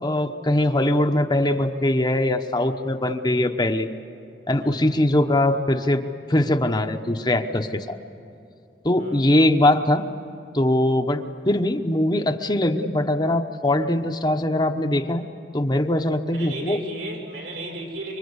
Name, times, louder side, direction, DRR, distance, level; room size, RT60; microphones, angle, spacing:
voice 1, 0.0-3.9 4.5-6.0 6.3-8.0 8.8-10.0 10.5-15.2 15.5-16.8, left 1 dB, 25° left, 6 dB, 0.9 m, -21 dB
voice 2, 4.6-4.9 9.0-9.2 11.2-11.3 16.3-18.2, right 2 dB, 80° right, -1 dB, 6.1 m, -35 dB
26.5 x 24.5 x 8.1 m, 2.6 s
head